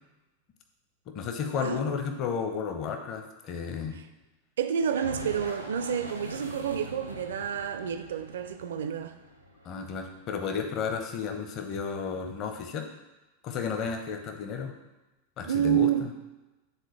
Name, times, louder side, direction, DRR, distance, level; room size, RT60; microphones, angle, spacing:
voice 1, 1.1-4.0 9.6-12.9 13.4-14.7 15.4-15.9, left 6 dB, 35° left, 5 dB, 0.8 m, -32 dB
voice 2, 4.6-9.2 15.4-16.1, right 9 dB, 60° right, 8 dB, 0.5 m, -29 dB
sound 1, 4.7-10.4, right 1 dB, 90° right, 0.8 m, -43 dB
9.1 x 3.8 x 3.2 m, 1.1 s
figure-of-eight pair, 90°, 0 cm